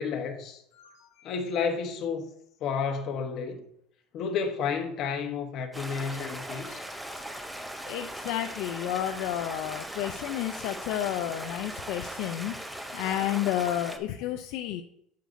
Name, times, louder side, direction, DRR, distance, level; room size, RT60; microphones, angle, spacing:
voice 1, 0.0-0.6 1.2-2.3 2.6-3.6 4.1-6.8, left 6 dB, 40° left, 1.0 m, -31 dB
voice 2, 0.8-1.3 7.9-14.8, left 12 dB, 65° left, 0.4 m, -31 dB
Stream, 5.7-14.0, equal, 5° right, 0.5 m, -39 dB
9.2 x 6.6 x 2.6 m
cardioid pair, 160°, 0 cm